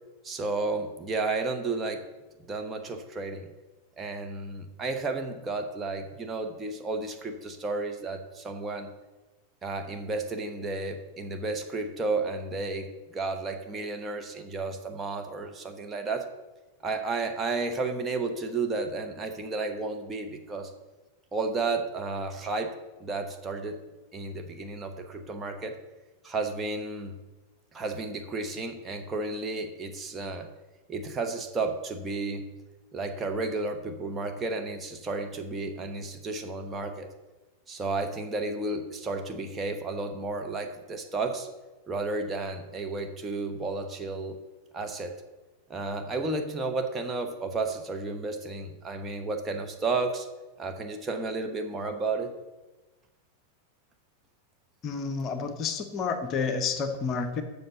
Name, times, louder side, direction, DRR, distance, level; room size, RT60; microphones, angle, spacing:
voice 1, 0.2-2.0 2.5-3.5 4.0-8.9 9.6-16.3 16.8-20.7 21.3-22.7 23.0-23.8 24.1-25.8 26.2-27.2 27.7-30.5 30.9-32.5 32.9-37.1 37.7-41.5 41.9-44.4 44.7-45.2 45.7-50.3 50.6-52.3, right 3 dB, 20° right, 4 dB, 1.1 m, -32 dB
voice 2, 54.8-57.4, left 5 dB, 35° left, 7 dB, 0.9 m, -30 dB
7.7 x 6.4 x 7.0 m, 1.1 s
figure-of-eight pair, 90°, 0 cm